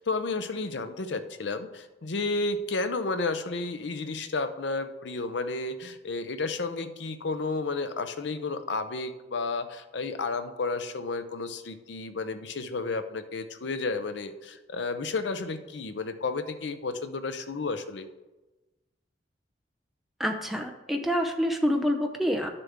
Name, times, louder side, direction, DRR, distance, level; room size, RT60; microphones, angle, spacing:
voice 1, 0.0-18.1, left 3 dB, 80° left, 9 dB, 0.6 m, -32 dB
voice 2, 20.2-22.5, equal, ahead, 3 dB, 0.6 m, -27 dB
10.5 x 6.8 x 3.6 m, 1.1 s
head